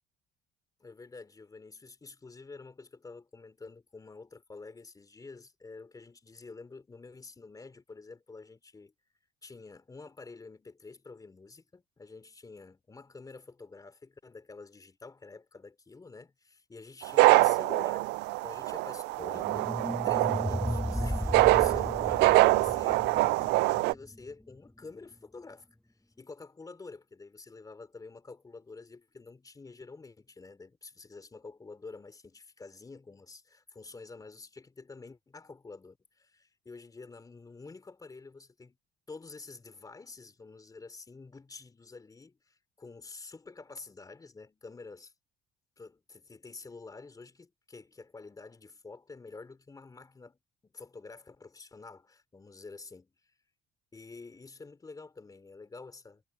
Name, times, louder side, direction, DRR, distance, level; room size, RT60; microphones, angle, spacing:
voice 1, 0.8-8.9 9.4-25.7 26.2-38.8 39.1-45.1 45.8-53.1 53.9-56.2, left 3 dB, 20° left, 3.7 m, -48 dB
sound 1, 17.0-23.9, right 20 dB, 90° right, 0.4 m, -25 dB
sound 2, 19.2-24.3, left 1 dB, 5° left, 1.1 m, -35 dB
cardioid pair, 110°, 17 cm